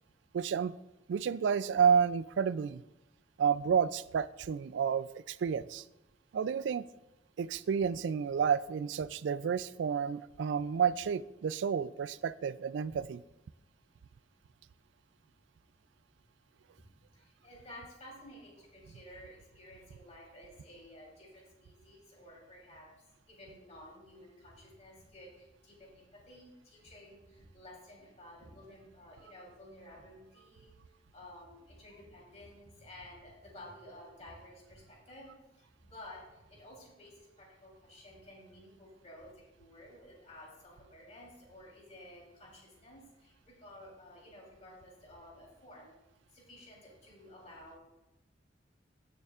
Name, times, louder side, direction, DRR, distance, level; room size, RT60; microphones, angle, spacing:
voice 1, 0.3-0.8 1.1-2.8 3.4-5.8 6.3-6.9 7.4-13.2, right 7 dB, 75° right, 17 dB, 0.3 m, -30 dB
voice 2, 16.8-45.9 46.3-47.8, left 1 dB, 40° left, -3 dB, 3.3 m, -53 dB
15.5 x 6.8 x 2.4 m, 0.97 s
head